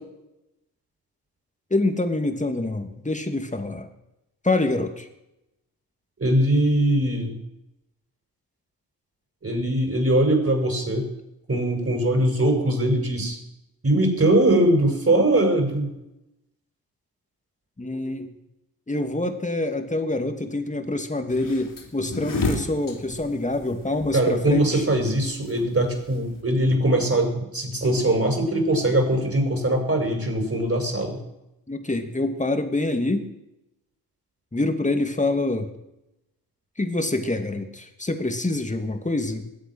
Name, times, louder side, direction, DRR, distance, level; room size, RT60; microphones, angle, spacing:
voice 1, 1.7-3.9 4.4-5.1 17.8-18.3 18.9-24.8 31.7-33.3 34.5-35.7 36.8-39.5, left 2 dB, 15° left, 6 dB, 2.5 m, -26 dB
voice 2, 6.2-7.3 9.4-11.1 11.5-13.4 13.8-15.9 24.1-31.2, right 1 dB, 30° right, 3 dB, 6.3 m, -21 dB
sound 1, 21.3-26.4, left 3 dB, 45° left, 4.1 m, -31 dB
21.5 x 8.1 x 6.4 m, 0.89 s
hypercardioid pair, 40°, 45 cm